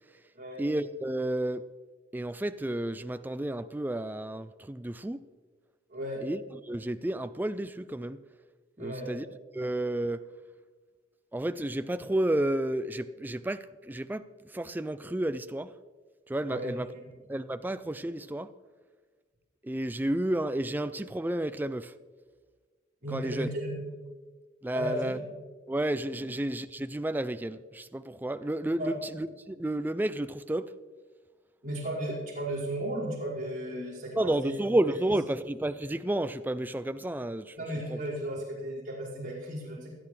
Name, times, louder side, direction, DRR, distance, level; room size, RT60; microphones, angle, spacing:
voice 1, 0.6-1.6 2.1-5.2 6.2-8.2 8.8-9.2 9.5-10.3 11.3-14.2 14.5-15.7 16.3-16.9 17.3-18.5 19.6-21.9 23.1-23.5 24.6-25.2 25.7-30.7 34.2-37.6 37.9-38.0, right 1 dB, 10° right, 0.3 m, -31 dB
voice 2, 5.9-6.2 8.8-9.1 16.5-17.1 23.0-23.8 24.7-25.3 26.2-26.3 28.8-29.0 31.6-34.6 37.6-39.9, right 1 dB, 45° right, 5.2 m, -35 dB
26.5 x 8.8 x 3.3 m
head